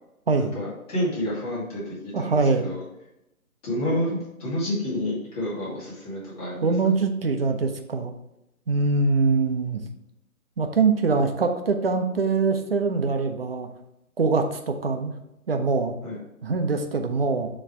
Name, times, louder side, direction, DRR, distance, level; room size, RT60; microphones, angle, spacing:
voice 1, 0.4-2.8 3.6-6.7 16.0-16.2, left 1 dB, 25° left, -7 dB, 2.3 m, -29 dB
voice 2, 2.1-2.7 6.6-8.1 8.7-9.8 10.6-13.7 14.2-15.1 15.5-15.9 16.4-17.5, right 4 dB, 40° right, 5 dB, 0.7 m, -23 dB
6.7 x 3.2 x 4.7 m, 0.88 s
figure-of-eight pair, 145°, 44 cm